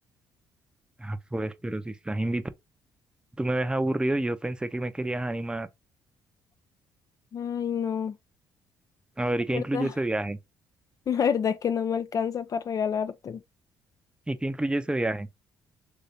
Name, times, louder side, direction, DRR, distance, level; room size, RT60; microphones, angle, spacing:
voice 1, 1.0-2.4 3.4-5.7 9.2-10.4 14.3-15.3, right 1 dB, 10° right, 0.6 m, -28 dB
voice 2, 7.3-8.2 9.5-9.9 11.1-13.4, left 7 dB, 45° left, 0.3 m, -28 dB
3.1 x 2.7 x 3.2 m
supercardioid pair, 60°, 8 cm